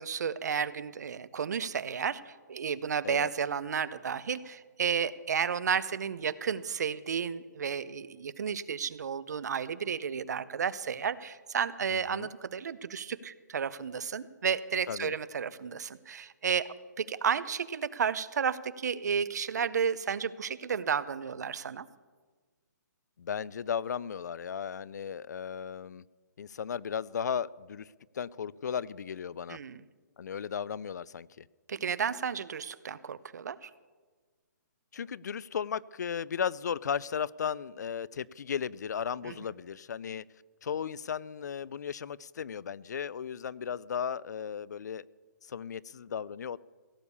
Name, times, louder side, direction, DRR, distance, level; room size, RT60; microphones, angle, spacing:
voice 1, 0.0-21.8 29.5-29.8 31.7-33.7 39.2-39.3, right 7 dB, 65° right, 17 dB, 0.7 m, -32 dB
voice 2, 11.9-12.3 14.9-15.1 23.2-26.0 26.4-29.6 30.2-31.5 34.9-40.2 40.6-45.1 45.4-46.6, left 7 dB, 65° left, 23 dB, 0.4 m, -35 dB
17.0 x 7.2 x 8.3 m, 1.4 s
hypercardioid pair, 165°, 10 cm